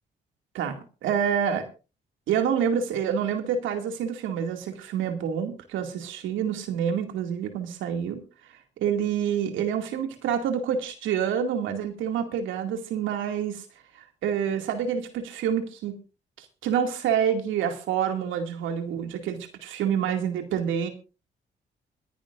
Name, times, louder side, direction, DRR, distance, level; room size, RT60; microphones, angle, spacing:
voice 1, 0.5-1.7 2.3-8.2 8.8-13.6 13.9-15.9 16.4-20.9, right 8 dB, 85° right, 5 dB, 2.3 m, -27 dB
27.0 x 10.5 x 2.5 m, 0.33 s
supercardioid pair, 60°, 20 cm